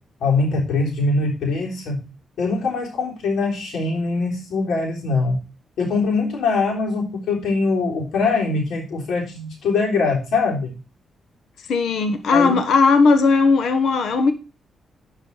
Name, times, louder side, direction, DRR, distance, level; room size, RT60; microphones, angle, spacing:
voice 1, 0.2-2.0 2.4-5.4 5.8-10.7 12.3-12.6, left 3 dB, 90° left, 3.7 m, -22 dB
voice 2, 11.7-14.3, left 4 dB, 75° left, 1.3 m, -17 dB
10.5 x 4.9 x 4.7 m
wide cardioid pair, 140°, 0 cm